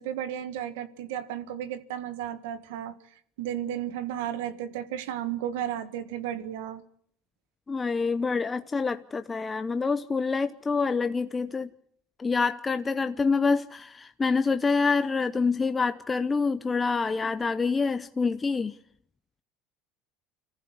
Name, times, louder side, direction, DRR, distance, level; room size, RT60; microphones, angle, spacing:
voice 1, 0.0-2.9 3.4-6.8, right 10 dB, 90° right, 1.7 m, -33 dB
voice 2, 7.7-11.7 12.2-18.7, left 4 dB, 20° left, 0.8 m, -26 dB
26.0 x 15.0 x 8.2 m
supercardioid pair, 110°, 0 cm